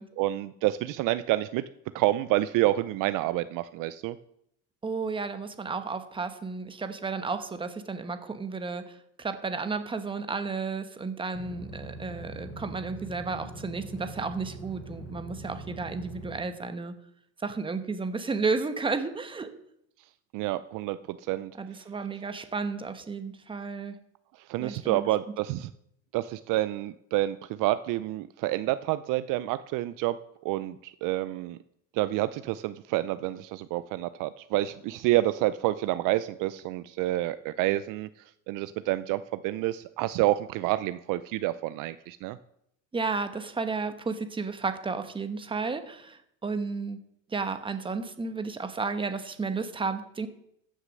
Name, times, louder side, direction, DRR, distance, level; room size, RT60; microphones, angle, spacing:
voice 1, 0.2-1.6 1.9-4.2 20.3-21.5 24.4-25.7 26.1-30.2 30.4-31.6 31.9-38.1 38.5-42.4, right 16 dB, 55° right, 14 dB, 0.5 m, -28 dB
voice 2, 4.8-16.9 17.4-19.5 21.6-24.0 24.6-25.0 42.9-47.0 47.3-50.3, right 4 dB, 15° right, 9 dB, 1.1 m, -32 dB
sound 1, 11.3-16.3, right 1 dB, 30° left, 5.5 m, -42 dB
15.0 x 6.6 x 6.4 m, 0.76 s
supercardioid pair, 125°, 39 cm